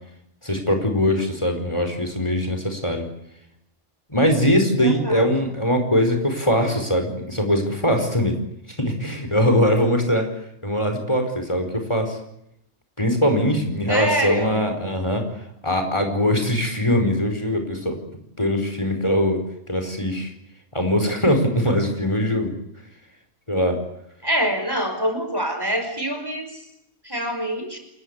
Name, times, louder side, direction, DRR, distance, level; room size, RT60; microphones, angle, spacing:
voice 1, 0.4-3.1 4.1-8.4 8.7-10.3 10.6-12.2 13.0-15.3 15.6-18.0 18.4-19.4 19.7-20.3 20.7-22.5 23.5-23.8, equal, 25° left, 5 dB, 5.0 m, -21 dB
voice 2, 4.8-5.3 13.9-14.6 24.2-26.5 27.0-27.8, equal, 20° right, 6 dB, 5.5 m, -25 dB
29.0 x 21.5 x 8.3 m, 0.78 s
omnidirectional pair, 1.1 m